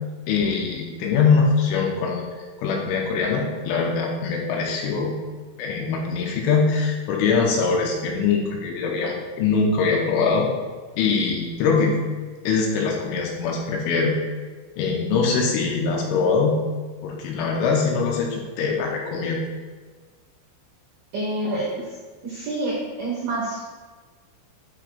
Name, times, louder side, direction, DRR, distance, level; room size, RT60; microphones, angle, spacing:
voice 1, 0.3-2.2 2.6-5.1 5.6-10.5 11.0-12.0 12.4-14.2 14.8-16.6 17.0-19.4, left 5 dB, 80° left, -1 dB, 3.1 m, -22 dB
voice 2, 21.1-21.7 22.2-23.6, right 2 dB, 80° right, -5 dB, 2.1 m, -27 dB
12.0 x 6.0 x 2.3 m, 1.4 s
omnidirectional pair, 6.0 m